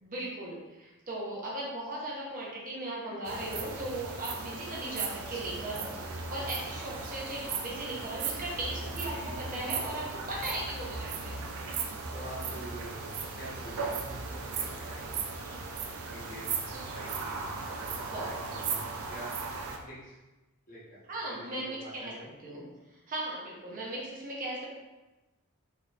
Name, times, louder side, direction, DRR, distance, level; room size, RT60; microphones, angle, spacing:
voice 1, 0.0-11.4 18.1-18.3 21.1-22.1 22.4-22.6 23.1-24.7, right 1 dB, 40° right, -4 dB, 0.8 m, -37 dB
sound 1, 3.2-19.8, right 4 dB, 70° right, 0.5 m, -37 dB
voice 2, 8.8-9.5 12.1-15.6 16.1-18.8 19.1-19.4 19.8-20.2 20.7-22.3, right 1 dB, 40° left, -7 dB, 1.1 m, -47 dB
4.0 x 2.7 x 2.5 m, 1.1 s
head